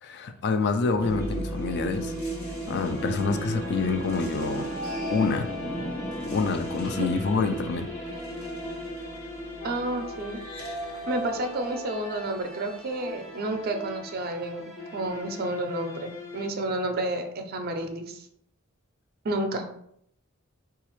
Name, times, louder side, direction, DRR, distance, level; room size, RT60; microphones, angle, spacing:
voice 1, 0.0-2.1 2.7-4.7 5.1-5.5 6.3-7.9, left 4 dB, 50° left, 8 dB, 0.4 m, -27 dB
sound 1, 0.9-13.1, right 1 dB, 90° left, 1.0 m, -35 dB
sound 2, 2.7-16.5, left 3 dB, 70° left, 0.8 m, -42 dB
voice 2, 9.6-10.4 11.1-14.6 14.9-18.3 19.2-19.6, right 1 dB, 45° right, 6 dB, 0.4 m, -30 dB
3.9 x 2.4 x 3.0 m, 0.70 s
head